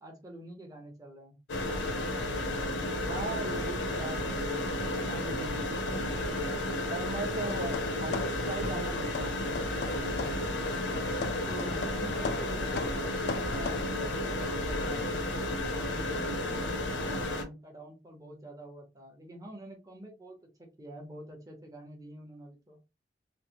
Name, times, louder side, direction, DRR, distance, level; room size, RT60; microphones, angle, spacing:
voice 1, 0.0-1.4 11.4-15.1 15.7-22.8, right 1 dB, 20° right, 1 dB, 0.8 m, -47 dB
sound 1, 1.5-17.4, left 1 dB, 90° left, 0.7 m, -32 dB
voice 2, 3.0-4.8 5.1-6.2 6.9-9.4, right 3 dB, 40° right, 4 dB, 0.3 m, -39 dB
sound 2, 7.4-8.9 9.1-10.5 11.0-13.8, left 4 dB, 60° left, 0.3 m, -38 dB
3.1 x 2.1 x 2.9 m, 0.28 s
head